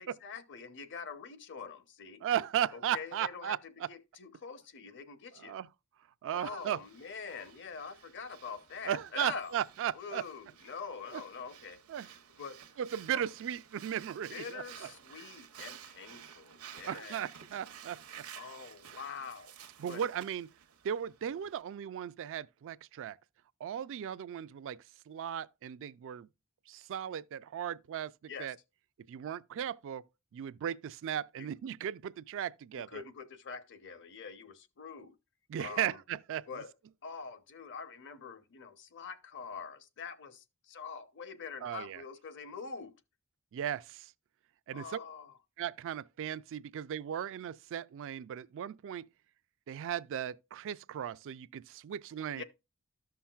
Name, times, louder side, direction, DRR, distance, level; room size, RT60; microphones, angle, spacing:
voice 1, 0.0-2.2 2.7-5.6 6.3-9.5 9.9-12.6 13.1-13.3 14.3-17.3 18.3-19.5 19.9-20.0 28.3-28.6 31.4-31.5 32.7-35.1 35.6-36.0 36.5-36.7 37.0-42.9 44.7-45.3 52.4-52.5, left 5 dB, 55° left, 0.7 m, -45 dB
voice 2, 2.2-3.6 5.4-5.7 6.2-6.8 8.9-10.2 11.1-11.2 11.9-12.1 12.8-14.9 16.9-18.0 19.8-20.5 20.8-23.2 23.6-24.8 25.1-26.3 26.7-28.1 28.4-28.6 29.1-30.0 30.3-33.0 35.5-36.4 41.6-42.0 43.5-44.1 44.7-45.0 45.6-49.0 49.7-52.4, right 9 dB, 60° right, 0.3 m, -36 dB
Breathing, 6.6-21.6, right 9 dB, 75° right, 0.8 m, -53 dB
13.5 x 5.7 x 2.3 m
head